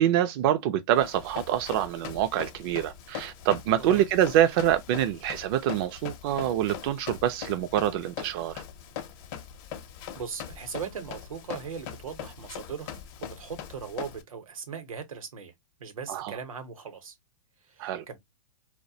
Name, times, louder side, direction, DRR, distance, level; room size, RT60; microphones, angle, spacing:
voice 1, 0.0-8.6 16.1-16.3 17.8-18.0, right 11 dB, 45° right, 0.4 m, -25 dB
Run, 0.9-14.2, left 9 dB, 45° left, 0.5 m, -41 dB
voice 2, 10.1-15.5 15.8-17.1 17.6-18.2, right 6 dB, 90° right, 0.8 m, -39 dB
2.3 x 2.1 x 2.6 m
hypercardioid pair, 130°, 17 cm